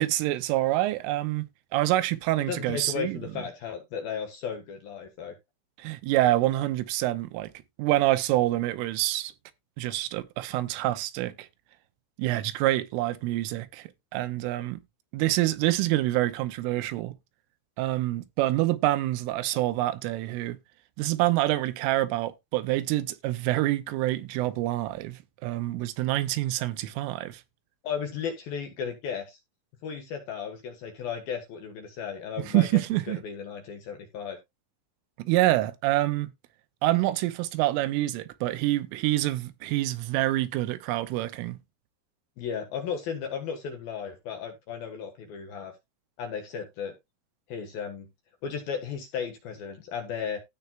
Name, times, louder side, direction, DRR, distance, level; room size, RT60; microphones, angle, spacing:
voice 1, 0.0-1.5 1.7-3.2 5.8-7.5 7.8-9.3 9.8-11.5 12.2-14.8 15.1-17.2 17.8-20.6 21.0-27.4 32.5-33.2 35.2-36.3 36.8-41.6, right 16 dB, 90° right, 3.4 m, -26 dB
voice 2, 2.5-5.4 27.8-29.4 29.8-32.7 33.1-34.4 42.4-45.7 46.2-46.9 47.5-48.1 48.4-50.4, left 7 dB, 65° left, 2.5 m, -35 dB
16.0 x 5.5 x 2.2 m
omnidirectional pair, 5.7 m